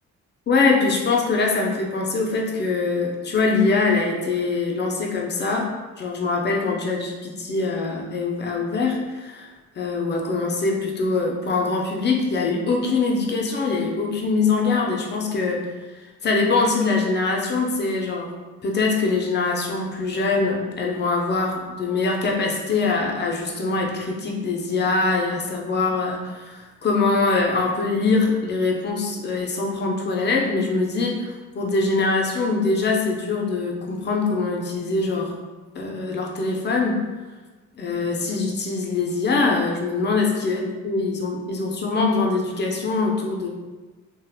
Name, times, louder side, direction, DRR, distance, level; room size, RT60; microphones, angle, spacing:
voice 1, 0.5-5.7 6.0-9.5 9.8-15.7 16.2-18.3 18.6-35.4 35.7-37.0 37.8-43.5, left 3 dB, 35° left, 0 dB, 0.4 m, -23 dB
2.8 x 2.1 x 2.3 m, 1.3 s
cardioid pair, 90°, 30 cm